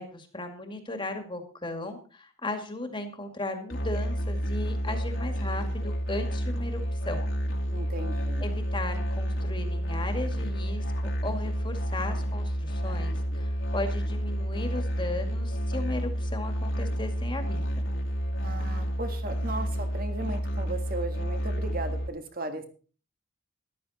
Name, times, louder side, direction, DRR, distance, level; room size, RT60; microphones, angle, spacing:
voice 1, 0.0-6.8 7.1-7.2 8.4-17.6, left 2 dB, 25° left, 5 dB, 2.2 m, -36 dB
Musical instrument, 3.7-22.1, equal, 65° left, 2.2 m, -30 dB
voice 2, 7.7-8.6 18.4-22.7, right 2 dB, 45° right, 7 dB, 1.9 m, -36 dB
13.5 x 12.5 x 4.2 m, 0.39 s
head